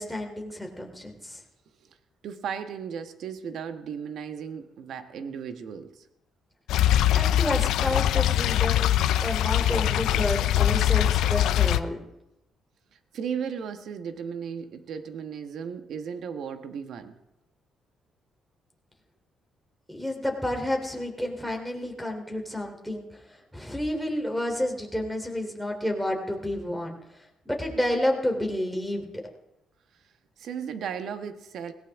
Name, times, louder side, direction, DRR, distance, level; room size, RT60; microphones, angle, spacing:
voice 1, 0.0-1.4 7.1-12.0 19.9-23.1 23.5-27.0 27.4-29.1, left 1 dB, ahead, 4 dB, 3.4 m, -30 dB
voice 2, 2.2-6.0 13.1-17.2 30.4-31.7, right 7 dB, 70° right, 8 dB, 1.3 m, -35 dB
sound 1, 6.7-11.8, left 12 dB, 85° left, 0.5 m, -22 dB
18.0 x 17.0 x 3.6 m, 0.89 s
cardioid pair, 90°, 0 cm